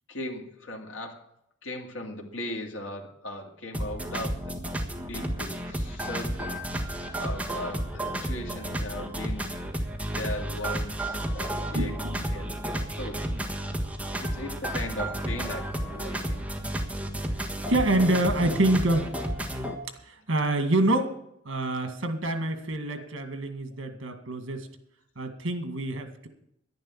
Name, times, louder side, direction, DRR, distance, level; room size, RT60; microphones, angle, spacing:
voice 1, 0.1-1.3 1.6-4.6 5.1-9.6 10.0-11.9 12.3-12.5 13.0-13.3 14.2-16.4 21.8-21.9 23.0-23.1, left 1 dB, 80° left, 1 dB, 2.2 m, -38 dB
sound 1, 3.7-19.8, right 1 dB, 5° right, 1.5 m, -32 dB
voice 2, 11.7-12.8 14.1-14.3 16.4-16.5 17.3-19.1 20.0-21.1 21.5-24.7 25.2-26.3, right 1 dB, 85° right, 7 dB, 2.0 m, -27 dB
11.0 x 10.5 x 7.4 m, 0.76 s
head